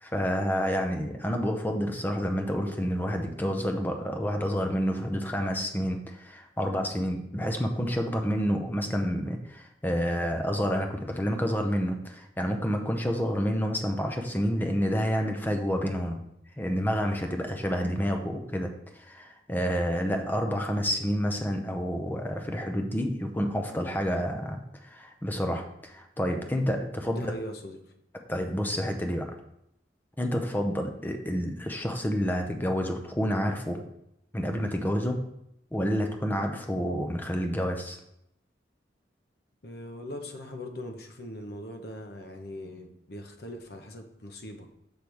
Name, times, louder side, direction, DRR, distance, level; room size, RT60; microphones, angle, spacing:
voice 1, 0.0-16.2 16.6-27.3 28.3-29.3 30.2-33.8 34.3-35.2 35.7-38.0, equal, 10° left, 4 dB, 0.7 m, -29 dB
voice 2, 27.1-27.8 39.6-44.7, left 1 dB, 60° left, 4 dB, 0.9 m, -41 dB
7.0 x 3.4 x 6.1 m, 0.79 s
head